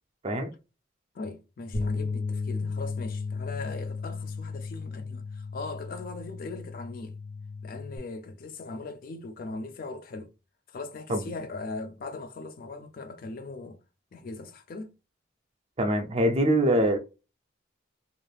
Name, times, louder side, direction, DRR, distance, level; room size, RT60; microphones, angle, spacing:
voice 1, 1.1-7.2 7.6-10.3 10.7-13.8 14.1-15.0, left 3 dB, 45° left, 0.3 m, -39 dB
sound 1, 1.7-8.0, left 4 dB, 90° left, 0.9 m, -34 dB
voice 2, 15.8-17.0, right 1 dB, 30° right, 0.4 m, -24 dB
2.5 x 2.3 x 3.2 m
head